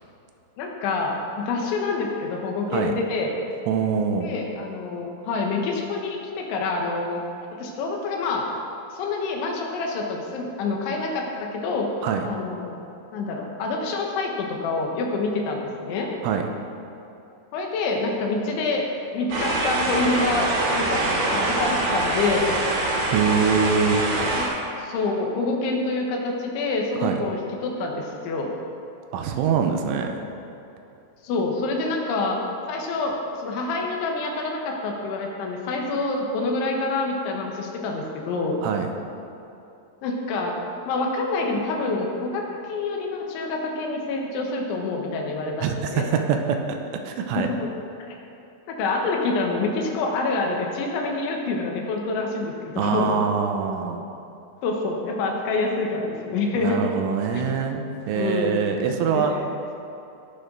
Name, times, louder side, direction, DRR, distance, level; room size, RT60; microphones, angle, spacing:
voice 1, 0.6-3.4 4.2-7.2 7.5-8.5 8.9-11.9 12.2-16.2 17.5-21.0 21.3-22.5 24.1-24.5 24.8-28.5 31.2-32.4 32.7-38.6 40.0-40.6 40.9-46.1 47.6-47.7 48.0-48.2 48.7-53.1 54.6-56.9 57.3-57.4 58.1-58.6 59.1-59.5, left 3 dB, 75° left, 0 dB, 3.4 m, -27 dB
voice 2, 3.7-4.3 12.0-12.2 16.2-16.5 23.1-24.1 27.0-27.2 29.1-30.2 38.6-38.9 45.6-47.5 52.8-54.1 56.6-59.4, right 6 dB, 85° right, 4 dB, 3.2 m, -24 dB
sound 1, 19.3-24.5, right 2 dB, 55° right, 3.6 m, -24 dB
18.0 x 6.6 x 5.2 m, 2.8 s
omnidirectional pair, 5.8 m